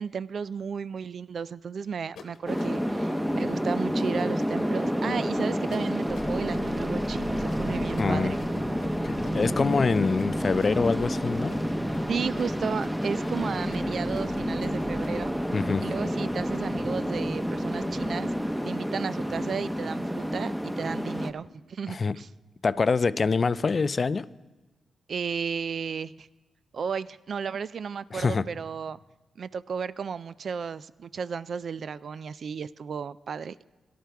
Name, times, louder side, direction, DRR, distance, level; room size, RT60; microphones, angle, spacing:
voice 1, 0.0-8.4 12.1-15.3 15.8-18.3 18.7-22.3 25.1-26.3 26.7-29.0 29.4-33.6, right 6 dB, 65° right, 17 dB, 0.3 m, -34 dB
sound 1, 2.1-3.0 4.0-4.5 5.7-6.4 7.5-15.2, left 5 dB, 85° left, 1.1 m, -49 dB
sound 2, 2.5-21.3, equal, 5° right, 0.8 m, -29 dB
sound 3, 6.1-18.5, right 1 dB, 20° right, 3.6 m, -39 dB
voice 2, 8.0-8.3 9.0-11.6 15.5-15.8 21.9-22.2 22.6-24.3 28.1-28.4, left 4 dB, 50° left, 17 dB, 0.4 m, -25 dB
17.5 x 12.0 x 3.4 m, 1.2 s
cardioid pair, 55°, 0 cm